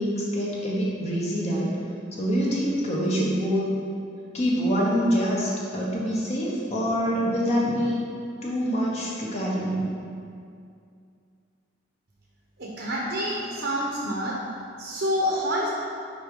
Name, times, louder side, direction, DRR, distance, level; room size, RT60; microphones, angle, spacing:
voice 1, 0.0-1.7 2.1-3.6 4.3-8.0 8.4-9.9, equal, 35° left, -4 dB, 0.9 m, -25 dB
voice 2, 12.6-14.4 14.8-15.7, equal, 60° right, -4 dB, 0.8 m, -27 dB
6.3 x 4.8 x 3.7 m, 2.4 s
head